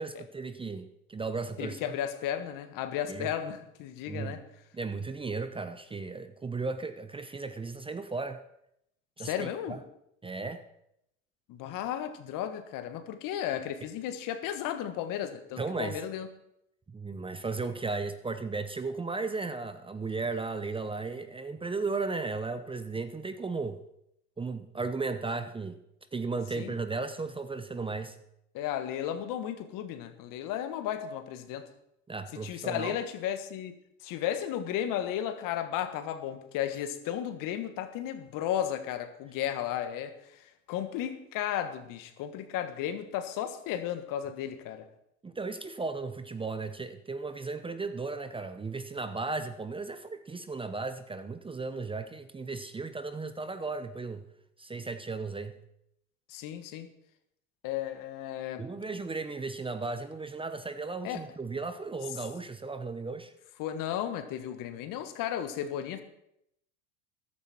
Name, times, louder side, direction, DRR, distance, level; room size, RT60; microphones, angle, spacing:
voice 1, 0.0-1.8 3.1-3.3 4.1-4.4 4.7-8.4 9.2-9.8 10.2-10.6 15.6-16.0 16.9-23.8 24.4-25.8 26.1-28.2 32.1-33.0 45.2-54.2 54.6-55.6 58.6-63.3, right 3 dB, 15° right, 11 dB, 0.8 m, -35 dB
voice 2, 1.6-4.4 9.2-9.8 11.5-16.3 26.5-26.7 28.5-31.7 32.3-33.7 34.0-44.8 56.3-56.9 57.6-58.6 61.0-61.2 63.6-66.0, left 10 dB, 55° left, 9 dB, 1.6 m, -34 dB
14.0 x 12.0 x 4.4 m, 0.79 s
hypercardioid pair, 85°, 38 cm